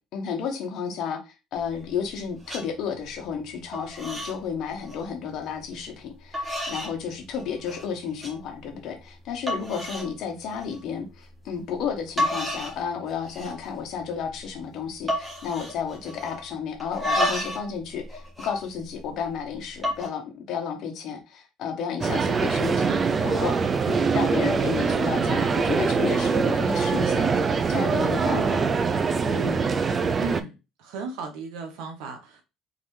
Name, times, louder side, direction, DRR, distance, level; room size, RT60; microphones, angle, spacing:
voice 1, 0.1-22.9 23.2-23.5 23.9-28.7 29.3-29.6, left 7 dB, 60° left, 3 dB, 1.1 m, -32 dB
sound 1, 1.5-2.1 2.4-2.6 3.1-3.5 3.7-4.4 4.7-5.0 5.7-5.8 6.3-6.9 7.3-7.8 8.2-8.3 8.9-9.0 9.5-10.1 10.5-10.8 11.8-11.9 12.2-12.8 13.1-13.7 14.0-14.1 14.3-14.6 15.1-16.4 16.8-17.7 18.0-19.2 19.7-20.1, left 1 dB, 15° right, 1.5 m, -30 dB
sound 2, 22.0-30.4, right 5 dB, 30° right, 0.4 m, -23 dB
voice 2, 30.2-30.5 30.8-32.4, right 5 dB, 80° right, 4 dB, 1.0 m, -35 dB
3.8 x 3.3 x 3.2 m, 0.28 s
supercardioid pair, 100°, 0 cm